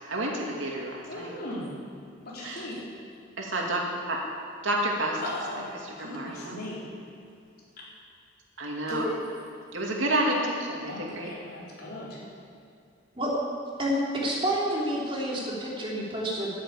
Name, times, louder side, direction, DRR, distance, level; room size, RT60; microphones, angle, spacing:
voice 1, 0.1-1.3 2.4-2.7 3.4-3.8 4.1-4.2 4.6-5.2 5.8-6.7 8.6-9.0 9.7-11.3, right 1 dB, 85° right, -1 dB, 2.6 m, -29 dB
voice 2, 1.1-1.7 2.3-2.7 5.2-5.7 6.0-6.8 8.9-9.1 10.8-12.2, left 1 dB, 50° left, -6 dB, 4.3 m, -37 dB
voice 3, 13.8-16.5, equal, 30° right, -5 dB, 3.4 m, -29 dB
11.5 x 10.5 x 8.6 m, 2.5 s
head